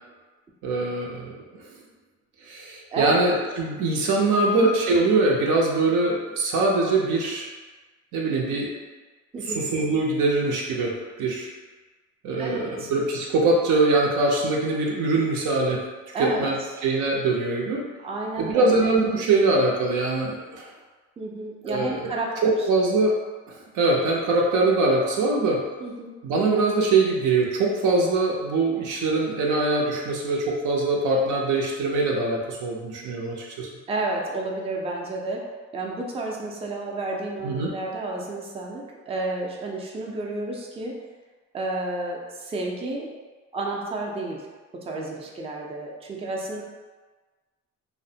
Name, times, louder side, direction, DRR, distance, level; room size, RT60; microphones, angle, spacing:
voice 1, 0.6-1.4 2.4-7.5 8.1-8.7 9.5-11.5 12.2-15.8 16.2-16.6 16.8-17.8 18.4-20.7 21.6-22.1 22.4-23.2 23.7-25.6 26.2-33.7 37.4-37.7, right 3 dB, 80° right, -2 dB, 0.6 m, -23 dB
voice 2, 12.3-12.9 16.1-16.5 18.0-18.9 21.2-22.6 25.8-26.1 33.9-35.4 35.7-41.0 41.5-43.1 43.5-44.5 44.7-46.6, right 2 dB, 20° right, -2 dB, 0.4 m, -31 dB
2.4 x 2.1 x 2.7 m, 1.3 s
cardioid pair, 90°, 30 cm